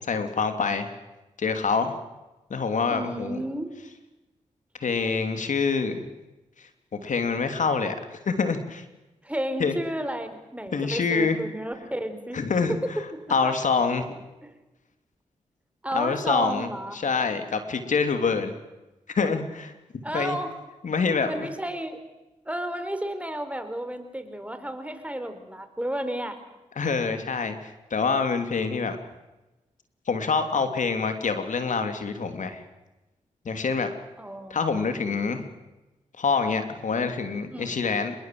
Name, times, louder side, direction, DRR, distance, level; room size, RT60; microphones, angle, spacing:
voice 1, 0.1-0.9 1.4-1.9 2.5-3.4 4.8-6.1 6.6-8.8 9.6-9.7 10.7-11.4 12.3-12.8 13.3-14.2 15.9-18.5 19.1-19.7 20.1-20.4 20.8-21.5 26.8-29.0 30.1-32.6 33.4-33.9 34.5-35.4 36.2-38.1, left 5 dB, 65° left, 8 dB, 3.0 m, -26 dB
voice 2, 2.9-3.8 9.2-12.4 12.7-13.5 14.4-14.6 15.8-17.0 20.0-20.5 21.2-22.0 22.5-26.4 34.2-35.4 37.5-37.8, right 1 dB, 10° right, 8 dB, 4.2 m, -32 dB
26.5 x 22.5 x 7.8 m, 1.0 s
cardioid pair, 60°, 14 cm